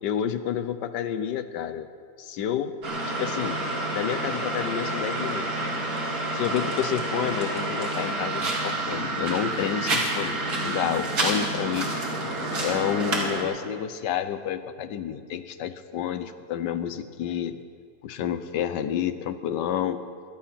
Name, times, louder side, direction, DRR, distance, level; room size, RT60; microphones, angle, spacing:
voice 1, 0.0-1.9 2.2-2.7 3.2-3.6 3.9-5.7 6.3-11.9 12.6-17.6 18.0-20.0, left 9 dB, 75° left, 11 dB, 1.4 m, -29 dB
sound 1, 2.8-13.4, right 2 dB, 60° right, 2.9 m, -28 dB
24.0 x 9.1 x 5.8 m, 2.2 s
omnidirectional pair, 1.9 m